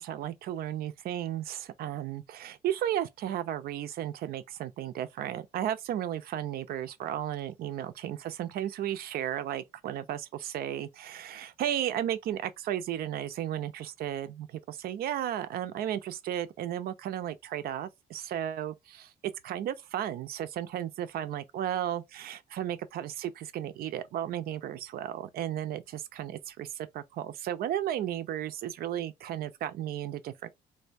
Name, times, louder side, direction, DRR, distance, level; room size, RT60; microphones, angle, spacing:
voice 1, 0.0-30.5, right 11 dB, 65° right, 0.6 m, -34 dB
3.3 x 2.7 x 2.6 m
cardioid pair, 110°, 17 cm